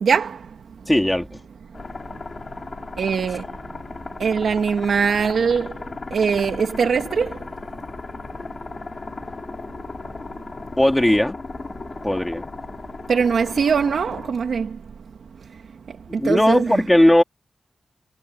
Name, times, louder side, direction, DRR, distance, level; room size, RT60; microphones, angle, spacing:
voice 1, 0.0-0.4 3.0-3.4 4.2-5.7 6.1-7.3 13.1-14.7 16.2-16.8, right 6 dB, 85° right, 2.7 m, -21 dB
voice 2, 0.9-1.4 10.8-11.4 12.0-12.5 16.2-17.2, left 1 dB, 10° left, 3.4 m, -17 dB
sound 1, 1.7-14.3, left 3 dB, 35° left, 5.9 m, -36 dB
wide cardioid pair, 145°, 0 cm